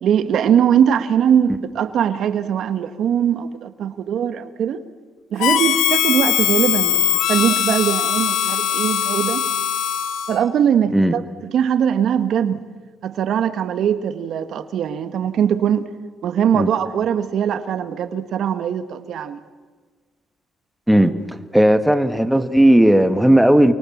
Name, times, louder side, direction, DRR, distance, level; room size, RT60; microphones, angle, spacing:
voice 1, 0.0-4.8 5.3-9.4 10.3-12.6 13.0-15.8 16.2-19.4, right 8 dB, 70° right, 1.5 m, -21 dB
Harmonica, 5.4-10.4, left 10 dB, 90° left, 1.6 m, -20 dB
voice 2, 21.5-23.7, right 1 dB, 5° right, 1.7 m, -14 dB
29.0 x 23.5 x 7.3 m
cardioid pair, 90°, 0 cm